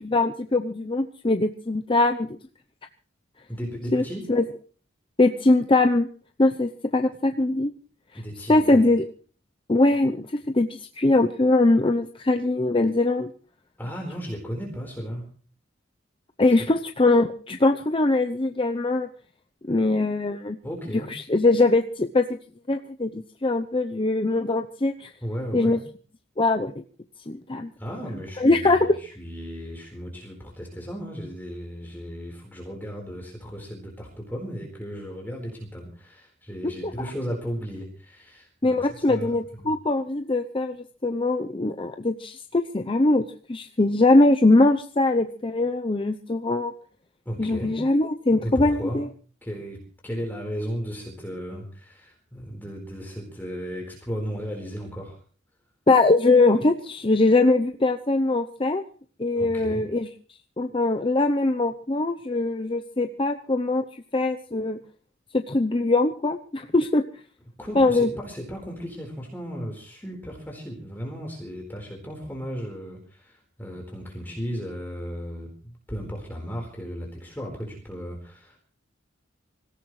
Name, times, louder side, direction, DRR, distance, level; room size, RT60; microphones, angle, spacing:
voice 1, 0.0-2.3 3.9-4.0 4.3-4.4 5.2-6.1 6.4-7.7 8.5-9.0 9.7-13.3 16.4-19.1 19.6-20.6 21.1-22.4 22.7-25.1 25.5-25.8 26.4-26.7 27.3-27.7 28.4-29.0 36.8-36.9 38.6-46.7 47.4-49.1 55.9-58.8 59.2-60.1 60.6-63.8 64.1-64.8 65.3-67.0 67.8-68.1, left 2 dB, 25° left, 6 dB, 0.7 m, -22 dB
voice 2, 3.5-4.3 8.1-8.9 13.8-15.2 20.6-21.1 25.2-25.8 27.8-39.7 47.2-47.8 48.4-49.0 49.4-55.2 59.4-59.8 67.6-78.6, equal, 10° left, 0 dB, 4.4 m, -35 dB
25.5 x 17.0 x 3.2 m, 0.43 s
head